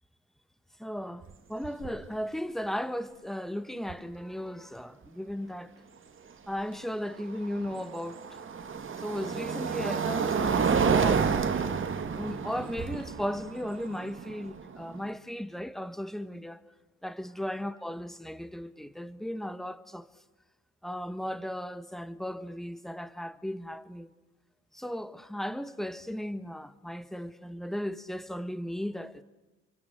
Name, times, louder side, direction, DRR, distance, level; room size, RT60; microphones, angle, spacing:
voice 1, 0.8-5.7 6.5-8.2 9.0-11.5 12.1-16.6 17.0-20.1 20.8-24.1 24.7-29.2, equal, ahead, 1.5 m, -36 dB
sound 1, 1.2-1.3 1.6-2.1 3.9-4.0 7.0-15.1, right 6 dB, 40° right, 2.2 m, -29 dB
29.0 x 24.0 x 7.9 m
cardioid pair, 90°, 30 cm